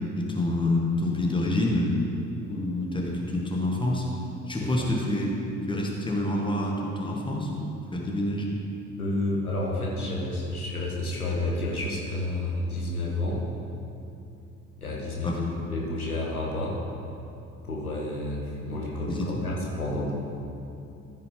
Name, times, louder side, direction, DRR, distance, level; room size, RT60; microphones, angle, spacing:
voice 1, 0.1-2.0 2.5-4.0 4.5-5.3 5.7-8.6 15.2-15.4 19.1-19.5, left 1 dB, 10° left, -2 dB, 1.7 m, -27 dB
voice 2, 9.0-13.4 14.8-15.4 15.7-16.8 17.7-20.1, left 2 dB, 90° left, -4 dB, 1.4 m, -30 dB
14.0 x 6.1 x 3.8 m, 2.8 s
figure-of-eight pair, 55°, 43 cm